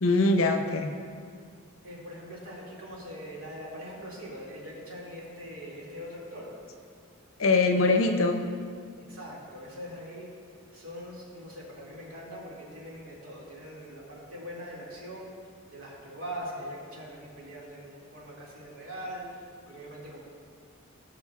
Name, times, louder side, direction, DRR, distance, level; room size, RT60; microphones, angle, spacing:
voice 1, 0.0-0.9 7.4-8.4, left 3 dB, 65° left, 5 dB, 0.7 m, -23 dB
voice 2, 1.8-6.5 9.1-20.2, equal, 80° right, -5 dB, 2.2 m, -42 dB
17.0 x 6.1 x 2.4 m, 2.2 s
head